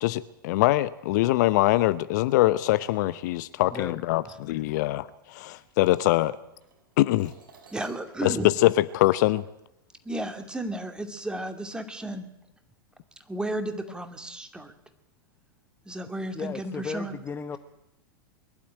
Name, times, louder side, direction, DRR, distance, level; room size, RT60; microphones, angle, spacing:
voice 1, 0.0-6.4 7.0-7.3 8.2-9.5, left 17 dB, 55° left, 16 dB, 0.7 m, -23 dB
sound 1, 5.6-9.7 10.6-10.7 11.4-11.8, right 5 dB, 70° right, 6.8 m, -58 dB
voice 2, 7.7-8.5 10.0-12.3 13.3-14.7 15.8-17.2, right 1 dB, 5° right, 6 dB, 2.5 m, -33 dB
voice 3, 16.3-17.6, left 6 dB, 20° left, 10 dB, 0.9 m, -35 dB
22.0 x 12.0 x 10.0 m, 0.87 s
figure-of-eight pair, 95°, 12 cm